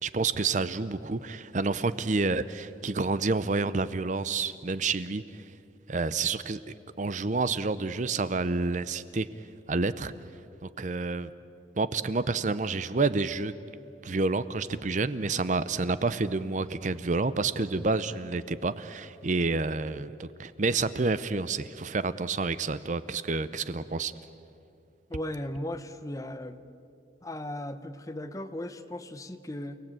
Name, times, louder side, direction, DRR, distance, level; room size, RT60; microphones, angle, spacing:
voice 1, 0.0-5.4 5.9-6.6 7.0-9.3 9.7-10.1 10.6-11.3 11.8-13.5 14.0-24.1, right 3 dB, 40° right, 14 dB, 0.6 m, -29 dB
voice 2, 25.1-26.6 27.2-29.8, left 1 dB, 20° left, 10 dB, 0.9 m, -37 dB
29.5 x 18.0 x 8.9 m, 2.6 s
head